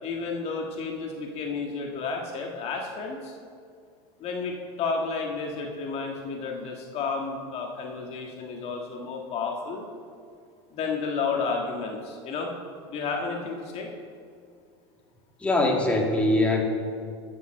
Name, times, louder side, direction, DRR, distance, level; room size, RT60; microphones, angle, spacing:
voice 1, 0.0-3.3 4.2-9.8 10.7-12.5 12.9-13.9, left 4 dB, 45° left, 1 dB, 1.6 m, -31 dB
voice 2, 15.4-16.6, left 2 dB, 10° left, -1 dB, 2.0 m, -22 dB
12.0 x 6.9 x 6.5 m, 2.3 s
supercardioid pair, 115°, 14 cm